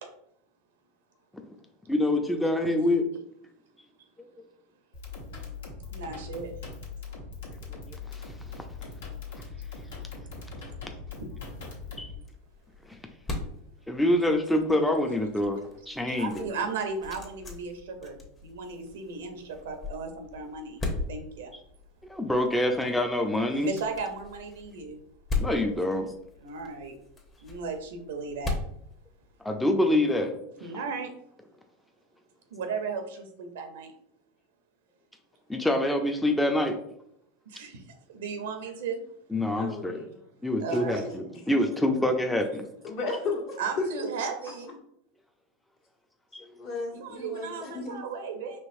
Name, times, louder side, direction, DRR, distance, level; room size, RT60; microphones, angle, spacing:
voice 1, 1.9-3.1 4.2-4.3 7.9-8.2 12.0-12.1 13.9-16.5 22.1-23.7 25.4-26.1 29.4-30.3 35.5-36.8 39.3-40.1 40.4-42.7 46.3-46.4, left 1 dB, 5° left, 4 dB, 0.5 m, -26 dB
sound 1, 4.9-12.2, left 4 dB, 80° left, 1.0 m, -41 dB
voice 2, 5.9-6.5 16.1-20.8 21.1-21.5 23.5-25.0 26.4-27.0 27.4-28.6 30.6-31.1 32.5-33.9 37.5-39.0 40.6-41.4 43.6-44.8 46.9-48.6, right 5 dB, 75° right, 5 dB, 0.6 m, -35 dB
sound 2, 11.1-29.7, left 3 dB, 30° left, 0.9 m, -39 dB
voice 3, 39.6-40.1 40.7-41.2 42.8-43.9 44.2-44.3 46.4-48.0, left 3 dB, 60° left, -2 dB, 1.4 m, -34 dB
4.5 x 3.0 x 2.6 m, 0.73 s
hypercardioid pair, 90°, 0 cm